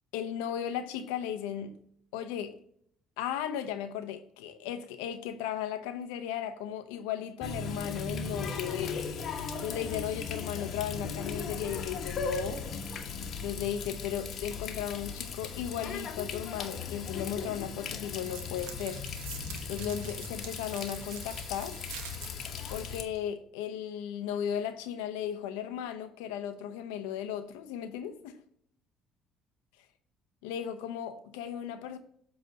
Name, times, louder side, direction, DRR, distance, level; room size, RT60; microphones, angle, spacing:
voice 1, 0.1-1.7 2.1-2.5 3.2-9.0 9.6-12.6 13.4-19.0 19.7-21.8 22.7-28.4 30.4-32.0, left 9 dB, 90° left, 0.7 m, -36 dB
Water tap faucet, 7.4-23.0, left 5 dB, 55° left, 1.1 m, -37 dB
sound 1, 18.1-23.2, right 7 dB, 85° right, 1.1 m, -46 dB
7.9 x 3.3 x 5.2 m
supercardioid pair, 80°, 0 cm